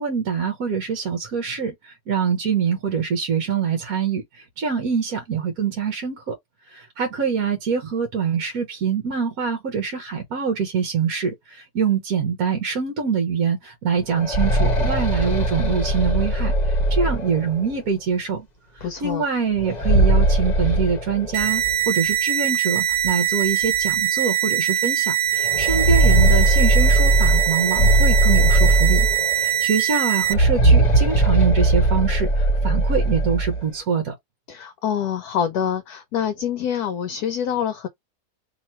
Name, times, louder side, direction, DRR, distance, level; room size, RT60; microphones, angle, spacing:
voice 1, 0.0-6.3 6.7-18.5 18.7-34.1, right 6 dB, 60° right, 1.3 m, -25 dB
sound 1, 14.0-17.8 19.6-21.8 22.1-22.2 23.0-23.1 23.6-23.8 25.4-29.6 30.2-33.6, right 1 dB, 30° left, 0.9 m, -19 dB
voice 2, 18.8-19.3 34.5-37.9, left 8 dB, 70° left, 1.0 m, -26 dB
sound 2, 21.3-30.3, right 11 dB, 90° right, 1.3 m, -22 dB
3.0 x 2.9 x 4.3 m
omnidirectional pair, 1.9 m